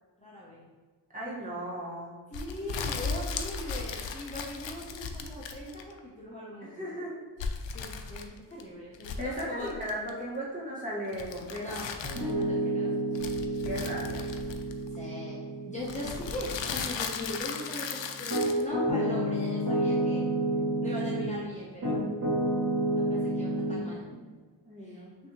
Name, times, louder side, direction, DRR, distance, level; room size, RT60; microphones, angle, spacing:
voice 1, 0.2-0.7 1.2-1.6 2.3-6.9 7.7-9.7 11.6-11.9 12.1-12.9 14.9-20.3 20.8-22.0 22.9-24.0 24.8-25.0, left 1 dB, 15° left, -6 dB, 0.6 m, -40 dB
voice 2, 1.1-2.2 6.6-7.2 9.2-11.7 13.6-14.3 24.6-25.1, equal, 20° right, -6 dB, 1.3 m, -36 dB
sound 1, 2.3-6.0 7.4-8.6 8.9-10.1 11.1-12.4 13.1-15.0 15.8-18.6, left 5 dB, 80° left, 0.5 m, -36 dB
Piano, 12.0-21.4 21.8-23.8, right 1 dB, 45° right, 1.3 m, -30 dB
6.2 x 2.7 x 2.9 m, 1.4 s
wide cardioid pair, 110°, 45 cm